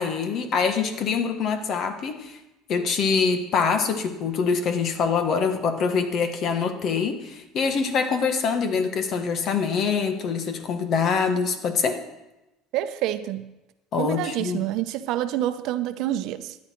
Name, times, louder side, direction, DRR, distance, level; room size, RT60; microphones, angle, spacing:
voice 1, 0.0-2.4 2.7-12.0 13.9-14.7, left 5 dB, 50° left, 7 dB, 1.5 m, -24 dB
voice 2, 12.7-13.4 14.0-16.6, right 13 dB, 65° right, 11 dB, 0.8 m, -27 dB
13.5 x 10.0 x 4.6 m, 0.98 s
cardioid pair, 120°, 0 cm